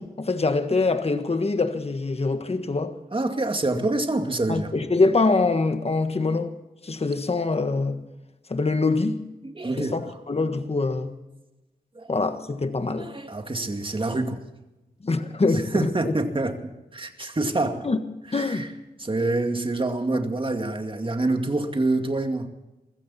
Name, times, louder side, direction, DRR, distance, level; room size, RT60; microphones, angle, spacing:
voice 1, 0.0-2.9 4.5-6.6 6.8-8.0 8.5-9.2 9.8-10.0 10.3-11.1 12.1-13.1 15.0-16.1 17.8-18.0 18.3-18.7, left 3 dB, 40° left, 1.5 m, -24 dB
voice 2, 3.1-4.7 9.4-10.2 11.9-12.1 12.9-14.4 15.5-17.8 18.3-18.7 19.0-22.5, right 2 dB, 35° right, 2.4 m, -26 dB
23.0 x 15.0 x 4.3 m
wide cardioid pair, 70°, 16 cm